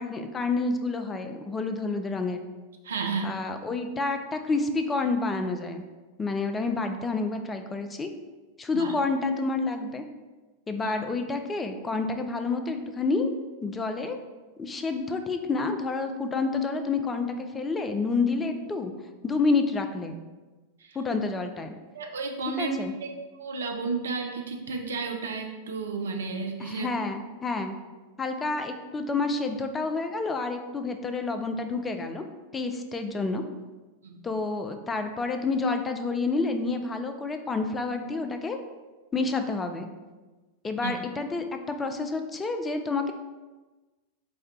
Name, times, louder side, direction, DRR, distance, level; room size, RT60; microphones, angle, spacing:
voice 1, 0.0-2.4 3.2-5.8 6.2-8.1 8.6-10.0 10.7-13.3 13.6-14.2 14.6-18.9 19.2-20.2 21.0-21.7 22.6-22.9 26.6-27.7 28.2-32.2 32.5-33.4 34.2-38.6 39.1-39.9 40.6-43.1, left 3 dB, 15° left, 7 dB, 0.3 m, -29 dB
voice 2, 2.8-3.3 8.7-8.9 10.8-10.9 20.8-21.0 21.9-26.9 34.0-34.2 40.8-40.9, right 4 dB, 65° right, 3 dB, 0.5 m, -32 dB
4.2 x 2.2 x 3.6 m, 1.2 s
figure-of-eight pair, 90°, 0 cm